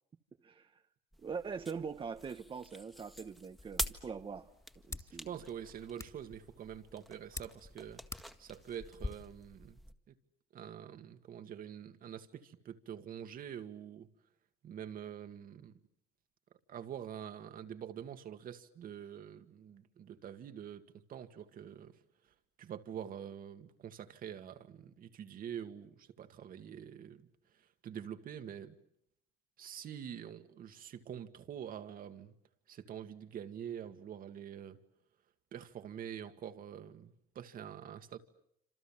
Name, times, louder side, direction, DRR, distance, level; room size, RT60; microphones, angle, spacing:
voice 1, 0.4-0.8 1.2-4.5 4.9-5.3, right 5 dB, 30° right, 1.0 m, -42 dB
sound 1, 1.1-10.0, equal, ahead, 1.8 m, -48 dB
sound 2, 3.6-9.1, left 3 dB, 20° left, 2.5 m, -47 dB
voice 2, 5.3-8.0 8.4-9.8 10.5-14.1 14.6-15.7 16.7-20.8 21.1-21.9 22.6-27.2 27.8-28.8 29.6-32.3 32.7-34.8 35.5-38.2, right 9 dB, 55° right, 2.0 m, -46 dB
27.0 x 27.0 x 7.3 m
cardioid pair, 110°, 17 cm